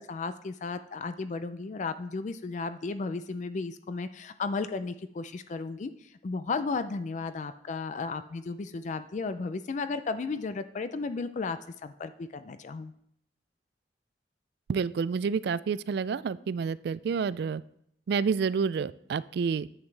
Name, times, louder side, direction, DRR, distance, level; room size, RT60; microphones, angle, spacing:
voice 1, 0.0-12.9, left 4 dB, 45° left, 11 dB, 0.4 m, -34 dB
voice 2, 14.7-17.6 18.1-19.7, right 5 dB, 65° right, 18 dB, 0.3 m, -29 dB
10.5 x 8.0 x 3.3 m, 0.72 s
head